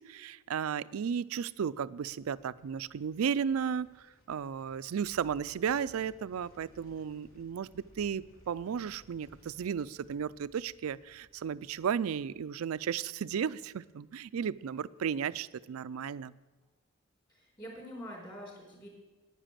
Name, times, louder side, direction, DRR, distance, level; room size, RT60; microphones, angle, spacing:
voice 1, 0.0-3.9 4.3-16.4, right 7 dB, 90° right, 17 dB, 0.4 m, -34 dB
sound 1, 1.5-14.7 15.0-15.1, equal, 80° left, 2.7 m, -62 dB
voice 2, 17.3-18.9, equal, 20° left, -1 dB, 4.4 m, -45 dB
10.0 x 9.9 x 7.4 m, 1.2 s
head